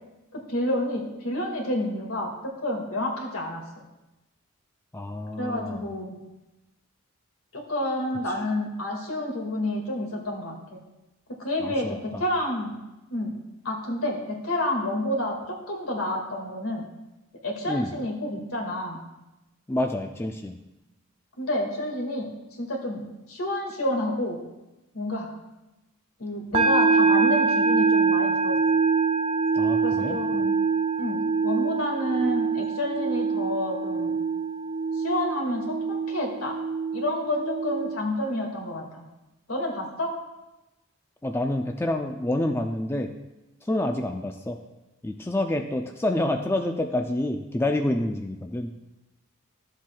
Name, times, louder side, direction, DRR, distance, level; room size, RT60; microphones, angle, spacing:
voice 1, 0.3-3.6 5.4-6.1 7.5-10.8 11.4-12.7 13.1-13.3 13.6-15.4 15.7-16.9 17.4-19.0 21.4-24.4 24.9-25.3 26.2-28.6 29.8-30.5 31.0-34.2 34.9-36.5 36.9-39.0 39.5-40.1, left 1 dB, 80° left, 0 dB, 1.9 m, -29 dB
voice 2, 4.9-5.9 11.6-12.2 17.7-17.9 19.7-20.6 29.5-30.2 41.2-43.1 43.6-44.6 45.0-48.7, left 1 dB, 10° left, 4 dB, 0.3 m, -28 dB
sound 1, 26.5-38.0, right 4 dB, 25° right, 0.6 m, -24 dB
13.0 x 7.4 x 2.3 m, 1.0 s
head